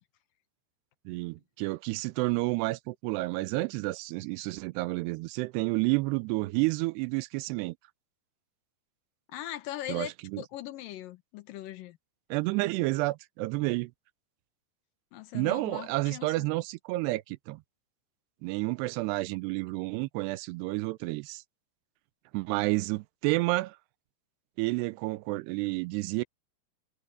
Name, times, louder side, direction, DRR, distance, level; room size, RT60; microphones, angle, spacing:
voice 1, 1.1-7.8 9.9-10.4 12.3-13.9 15.3-17.6 18.4-21.4 22.3-23.8 24.6-26.2, right 22 dB, 85° right, 2.7 m, -30 dB
voice 2, 9.3-12.0 15.1-16.5, left 13 dB, 65° left, 2.6 m, -40 dB
omnidirectional pair, 4.8 m